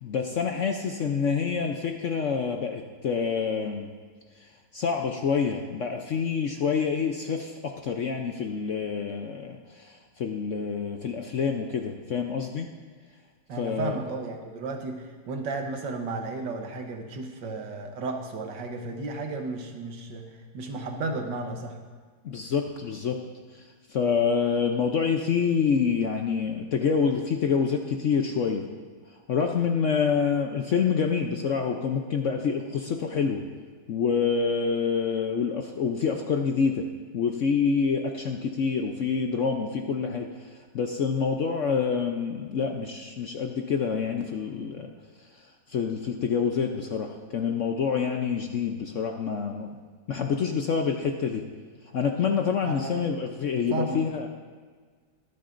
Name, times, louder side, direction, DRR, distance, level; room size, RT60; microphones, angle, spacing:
voice 1, 0.0-3.9 4.4-12.7 13.6-14.0 22.2-23.2 23.5-28.7 29.3-33.4 33.9-36.9 37.1-44.9 45.3-49.8 50.1-51.4 51.9-54.3, left 6 dB, 60° left, 3 dB, 0.8 m, -27 dB
voice 2, 13.5-20.3 20.5-21.8 52.6-52.9 53.7-54.0, right 3 dB, 80° right, 4 dB, 1.7 m, -33 dB
23.0 x 8.0 x 2.6 m, 1.5 s
omnidirectional pair, 1.9 m